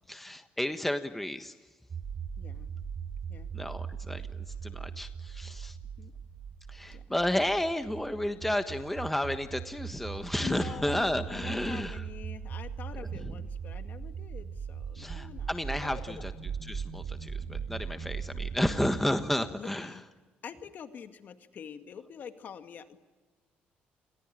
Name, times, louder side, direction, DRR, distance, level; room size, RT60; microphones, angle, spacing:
voice 1, 0.1-1.5 3.5-4.2 4.6-5.7 6.7-12.0 13.2-13.3 14.9-16.3 16.7-19.9, left 1 dB, 5° left, 8 dB, 1.4 m, -32 dB
sound 1, 1.9-18.9, right 7 dB, 45° right, 4.4 m, -39 dB
voice 2, 2.4-2.7 3.3-3.5 6.0-6.1 6.9-7.0 10.4-15.5 15.8-16.0 19.6-20.0 20.4-23.0, left 7 dB, 55° left, 7 dB, 2.1 m, -45 dB
29.5 x 22.5 x 9.0 m, 1.3 s
cardioid pair, 105°, 4 cm